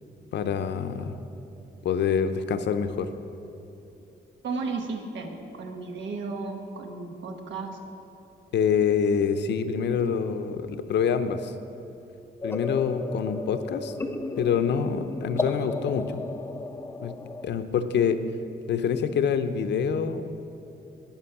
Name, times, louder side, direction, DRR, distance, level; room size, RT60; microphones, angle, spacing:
voice 1, 0.3-1.2 1.8-3.1 8.5-11.5 12.4-13.9 14.4-16.2 17.0-17.1 17.4-18.2 18.7-20.3, left 7 dB, 70° left, 9 dB, 0.6 m, -26 dB
voice 2, 4.4-7.8, right 4 dB, 80° right, 4 dB, 1.2 m, -34 dB
sound 1, 12.4-17.5, left 3 dB, 15° left, 0.5 m, -34 dB
11.5 x 9.0 x 5.9 m, 2.9 s
wide cardioid pair, 145°, 19 cm